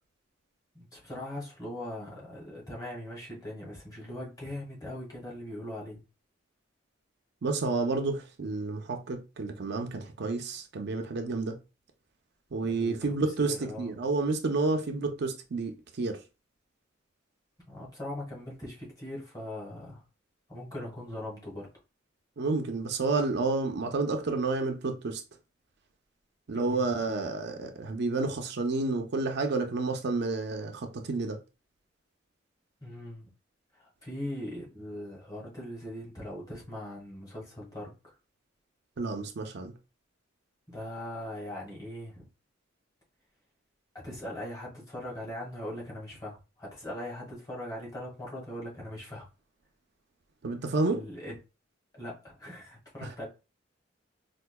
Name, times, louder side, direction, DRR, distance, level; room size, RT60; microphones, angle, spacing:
voice 1, 0.7-6.0 12.6-13.0 13.4-13.9 17.7-20.0 20.5-21.7 26.5-26.9 32.8-33.3 33.7-38.1 40.7-42.3 43.9-49.3 50.9-51.4 51.9-53.3, left 1 dB, 20° left, 1.5 m, -40 dB
voice 2, 7.4-11.6 12.5-16.2 22.4-25.2 26.5-31.4 39.0-39.7 50.4-51.0 53.0-53.1, right 3 dB, 60° right, 0.5 m, -30 dB
4.5 x 2.4 x 2.2 m
head